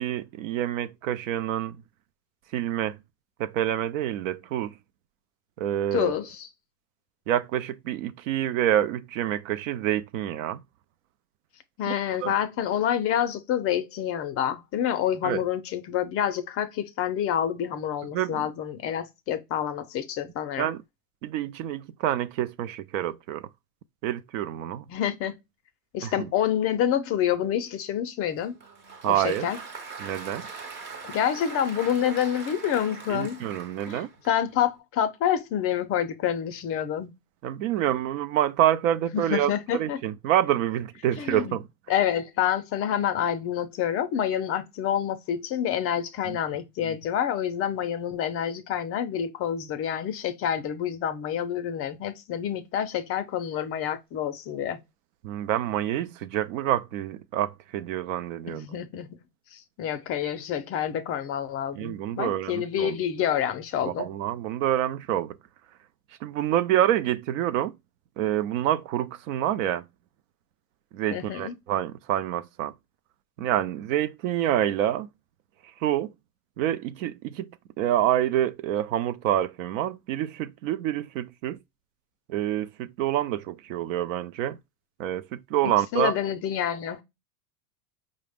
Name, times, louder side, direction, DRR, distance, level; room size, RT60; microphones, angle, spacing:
voice 1, 0.0-1.8 2.5-3.0 3.4-4.7 5.6-6.1 7.3-10.6 11.9-12.0 12.2-12.3 15.2-15.4 18.1-18.5 20.6-20.8 21.2-23.5 24.0-24.8 26.0-26.1 29.0-29.5 30.0-30.5 33.1-34.1 37.4-41.7 46.3-46.4 46.8-47.0 55.2-58.7 61.7-63.0 63.8-65.4 66.2-67.7 68.2-69.8 70.9-72.7 73.4-75.1 75.8-76.1 76.6-77.5 77.8-81.6 82.3-84.6 85.0-86.1, right 12 dB, 60° right, 0.5 m, -27 dB
voice 2, 5.9-6.5 11.8-20.7 24.9-25.4 25.9-28.5 29.0-29.6 31.0-33.4 33.9-37.1 39.1-40.0 41.2-41.6 41.9-54.8 58.5-59.2 59.5-64.1 71.1-71.5 85.6-87.0, left 9 dB, 30° left, 0.5 m, -28 dB
Applause, 28.4-34.6, right 4 dB, 25° right, 0.7 m, -42 dB
4.8 x 2.1 x 3.4 m
hypercardioid pair, 110°, 46 cm